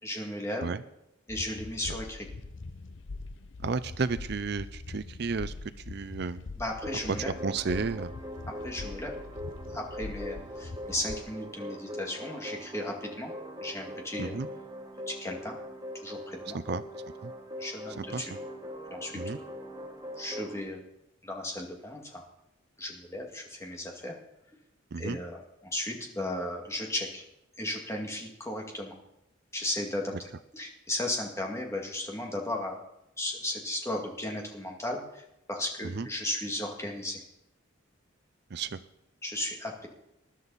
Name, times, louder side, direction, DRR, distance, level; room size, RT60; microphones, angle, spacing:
voice 1, 0.0-0.7 1.3-2.3 6.6-7.3 8.6-9.2 9.7-13.3 13.6-14.4 15.1-15.6 16.0-16.6 17.6-18.3 18.9-19.4 20.2-20.8 21.2-22.2 22.8-24.2 25.0-27.2 27.6-29.0 29.5-32.8 33.2-37.2 39.2-39.9, left 1 dB, 15° left, 0 dB, 2.1 m, -35 dB
sound 1, 1.3-11.2, left 3 dB, 65° left, 0.7 m, -42 dB
voice 2, 3.6-5.5 5.9-6.4 7.2-8.1 14.2-14.5 16.5-16.8 17.2-17.3 18.0-18.4 19.1-19.4 24.9-25.2 35.8-36.1 38.5-38.8, right 4 dB, 55° right, 13 dB, 0.5 m, -32 dB
sound 2, 6.8-20.6, equal, 20° right, 1.2 m, -41 dB
20.5 x 11.5 x 4.2 m, 0.84 s
head